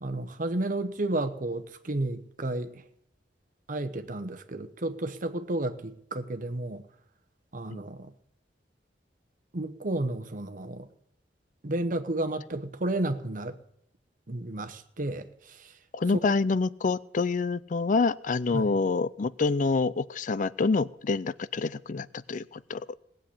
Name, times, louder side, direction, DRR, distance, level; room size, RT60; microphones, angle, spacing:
voice 1, 0.0-2.9 3.7-6.9 7.5-8.1 9.5-10.9 11.6-13.6 14.3-15.8 16.1-16.3 18.5-18.8, right 2 dB, 50° right, 1.0 m, -32 dB
voice 2, 15.9-22.9, left 4 dB, 45° left, 0.5 m, -27 dB
18.5 x 7.9 x 8.5 m
head